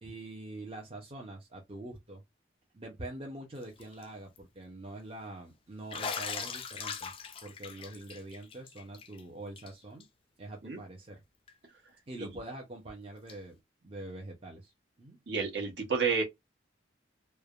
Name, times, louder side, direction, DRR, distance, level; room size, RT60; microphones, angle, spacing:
voice 1, 0.0-2.2 2.7-7.1 7.4-10.1 10.4-11.2 12.1-13.6 13.8-14.7 15.0-15.2, right 2 dB, 30° right, 0.5 m, -44 dB
Bathtub (filling or washing), 3.6-4.0 4.4-4.5 5.9-9.2 9.6-9.7 10.0-10.1 11.5-11.6 13.3-13.4, left 6 dB, 30° left, 0.3 m, -40 dB
voice 2, 15.3-16.2, right 5 dB, 65° right, 1.1 m, -30 dB
3.2 x 2.1 x 2.3 m
head